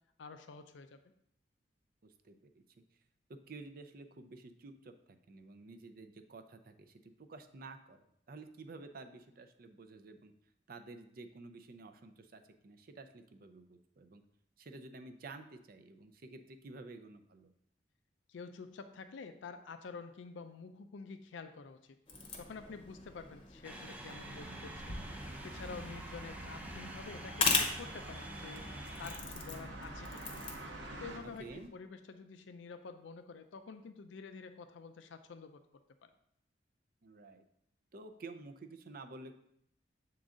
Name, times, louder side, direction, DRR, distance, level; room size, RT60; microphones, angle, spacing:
voice 1, 0.2-1.0 18.3-22.0 22.4-24.9 25.4-28.7 29.0-30.3 31.0-35.6 36.0-36.1, left 4 dB, 85° left, 8 dB, 0.4 m, -48 dB
voice 2, 2.0-2.6 3.5-8.0 8.3-10.3 10.7-14.2 14.6-17.5 31.4-31.7 37.0-37.4 37.9-39.3, right 3 dB, 50° right, 8 dB, 0.5 m, -51 dB
sound 1, 22.1-31.7, left 4 dB, 30° left, 0.8 m, -40 dB
sound 2, 23.6-29.2, right 1 dB, 10° right, 0.6 m, -48 dB
sound 3, 24.0-31.2, right 1 dB, 90° right, 0.9 m, -48 dB
7.0 x 3.8 x 3.7 m, 0.73 s
head